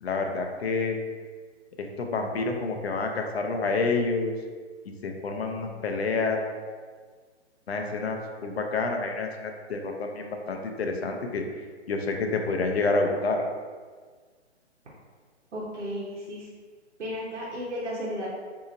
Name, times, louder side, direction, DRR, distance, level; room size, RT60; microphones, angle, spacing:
voice 1, 0.0-1.0 1.8-4.3 5.0-6.8 7.7-11.4 11.9-13.4, left 3 dB, 60° left, 3 dB, 0.6 m, -28 dB
voice 2, 5.6-5.9 15.5-16.5 17.0-18.3, equal, 75° right, -7 dB, 1.0 m, -34 dB
4.0 x 2.8 x 2.5 m, 1.5 s
hypercardioid pair, 175°, 35 cm